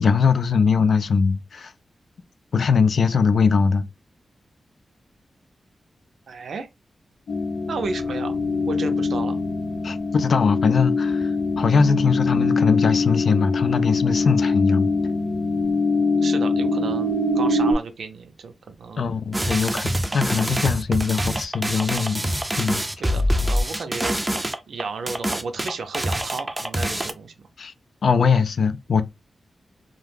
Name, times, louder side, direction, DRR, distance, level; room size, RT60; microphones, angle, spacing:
voice 1, 0.0-1.7 2.5-3.8 9.8-11.3 11.6-14.9 19.0-22.3 22.6-22.8 27.6-27.7 28.0-29.0, left 5 dB, 65° left, 0.3 m, -21 dB
voice 2, 6.3-6.7 7.7-8.4 8.7-9.4 16.2-19.2 23.0-24.2 24.7-27.3, right 4 dB, 85° right, 0.5 m, -33 dB
sound 1, 7.3-17.7, left 3 dB, 85° left, 0.7 m, -23 dB
sound 2, 19.3-27.1, equal, 15° right, 0.4 m, -25 dB
2.4 x 2.2 x 3.3 m
wide cardioid pair, 105°, 0 cm